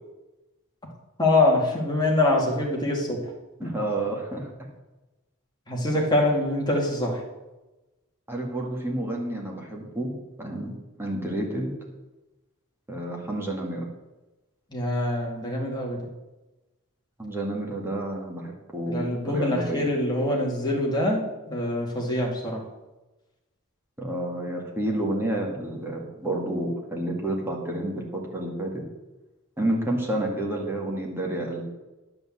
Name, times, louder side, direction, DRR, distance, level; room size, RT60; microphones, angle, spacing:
voice 1, 1.2-3.2 3.6-3.7 5.7-7.2 14.7-16.0 18.8-21.2 21.5-22.6, left 1 dB, 20° left, -2 dB, 2.4 m, -24 dB
voice 2, 3.6-4.5 8.3-10.1 10.4-11.7 12.9-13.9 17.2-19.8 24.0-28.8 29.6-31.6, right 1 dB, 10° right, -1 dB, 2.1 m, -30 dB
10.5 x 5.4 x 7.4 m, 1.1 s
head